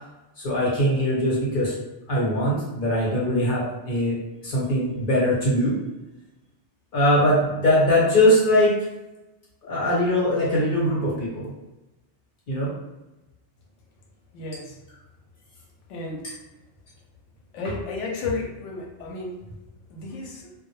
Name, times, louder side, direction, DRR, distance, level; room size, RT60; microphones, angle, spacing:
voice 1, 0.4-1.7 2.1-4.2 4.4-5.7 6.9-8.7 9.6-11.5 12.5-12.7, left 1 dB, 50° left, -5 dB, 1.0 m, -21 dB
voice 2, 14.3-14.8 15.9-16.2 17.5-19.5 19.9-20.5, left 3 dB, 85° left, 1 dB, 0.9 m, -32 dB
2.1 x 2.0 x 2.9 m, 1.0 s
omnidirectional pair, 1.2 m